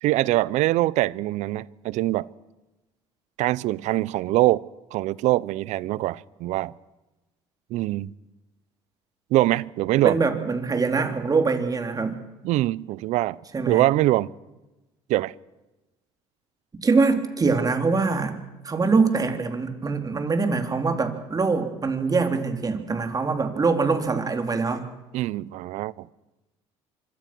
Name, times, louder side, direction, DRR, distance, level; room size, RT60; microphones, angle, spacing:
voice 1, 0.0-2.3 3.4-4.6 4.9-6.7 7.7-8.1 9.3-10.2 12.4-13.4 13.7-14.3 15.1-15.3 25.1-26.1, right 17 dB, 70° right, 0.7 m, -23 dB
voice 2, 10.0-12.2 13.5-13.8 16.8-18.4 18.6-24.8, right 4 dB, 30° right, 3.6 m, -23 dB
25.5 x 22.5 x 6.2 m
supercardioid pair, 80°, 12 cm